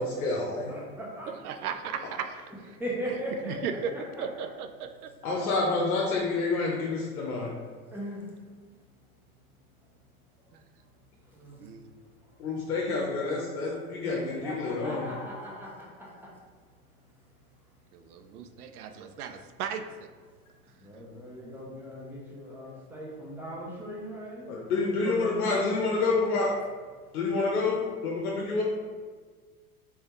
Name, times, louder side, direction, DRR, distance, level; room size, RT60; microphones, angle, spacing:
voice 1, 0.0-0.7 5.2-7.5 12.4-15.1 24.5-26.5 27.1-28.6, left 3 dB, 75° left, -2 dB, 0.8 m, -28 dB
voice 2, 0.7-1.3 2.8-4.0 4.4-4.5 7.9-8.3 11.3-11.6 14.0-16.3 20.7-25.6, equal, 5° right, -5 dB, 1.1 m, -39 dB
voice 3, 1.4-2.0 3.1-3.2 3.4-3.9 4.2-5.1 10.5-10.6 11.6-12.0 17.9-19.8, right 7 dB, 80° right, 7 dB, 0.5 m, -36 dB
3.5 x 3.3 x 3.0 m, 1.5 s
hypercardioid pair, 95°, 44 cm